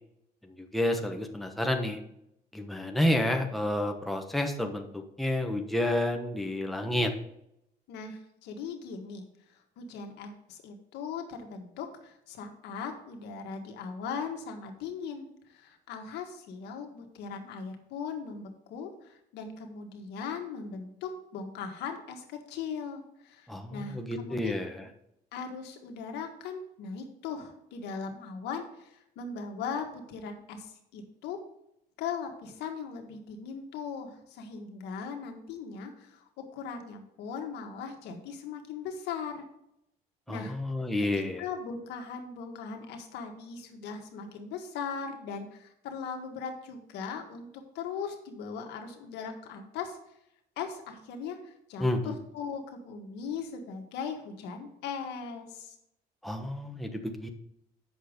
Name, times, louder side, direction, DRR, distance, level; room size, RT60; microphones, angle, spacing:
voice 1, 0.4-2.0 2.5-7.1 23.5-24.8 40.3-41.4 51.8-52.2 56.2-57.3, left 1 dB, ahead, 3 dB, 1.1 m, -30 dB
voice 2, 7.9-9.2 9.8-24.5 25.3-31.4 32.0-36.2 36.5-39.5 40.3-40.6 41.4-47.5 47.7-50.0 50.6-55.7, left 6 dB, 85° left, 4 dB, 1.6 m, -39 dB
8.2 x 6.2 x 5.0 m, 0.79 s
cardioid pair, 110°, 17 cm